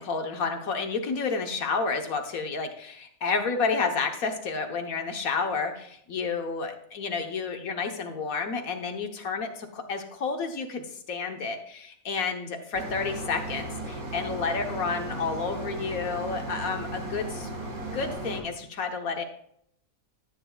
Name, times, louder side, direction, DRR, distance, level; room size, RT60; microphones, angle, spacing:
voice 1, 0.0-17.5 17.9-19.2, left 4 dB, 80° left, 5 dB, 1.6 m, -30 dB
sound 1, 12.7-18.4, right 2 dB, 90° right, 2.1 m, -36 dB
13.5 x 9.2 x 2.4 m, 0.70 s
omnidirectional pair, 1.5 m